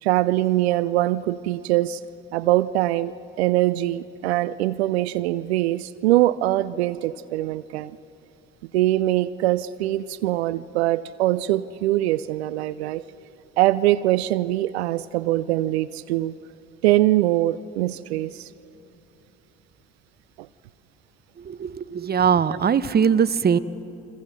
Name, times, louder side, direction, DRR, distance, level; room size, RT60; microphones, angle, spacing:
voice 1, 0.0-2.0 2.3-7.9 8.7-13.0 13.6-16.3 16.8-18.5 20.4-20.5 22.5-22.6, right 15 dB, 80° right, 0.5 m, -22 dB
voice 2, 21.4-23.6, right 7 dB, 30° right, 0.9 m, -21 dB
30.0 x 23.5 x 6.0 m
hypercardioid pair, 55°, 32 cm